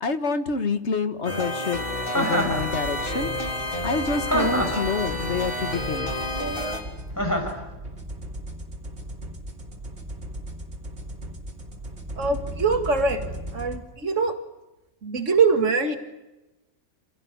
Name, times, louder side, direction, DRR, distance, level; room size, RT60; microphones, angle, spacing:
voice 1, 0.0-1.8 2.2-3.3 3.8-6.1, left 4 dB, 65° left, 9 dB, 1.9 m, -27 dB
sound 1, 1.2-6.8, left 1 dB, 45° left, 4.1 m, -30 dB
Chuckle chortle, 2.1-2.6 4.3-4.8 7.2-7.6, equal, 15° left, 5.2 m, -24 dB
sound 2, 2.5-13.8, right 1 dB, 60° right, 3.4 m, -37 dB
voice 2, 12.2-13.2 13.5-14.4 15.0-16.0, right 4 dB, 85° right, 6 dB, 2.4 m, -23 dB
27.5 x 17.5 x 9.6 m, 0.99 s
omnidirectional pair, 1.3 m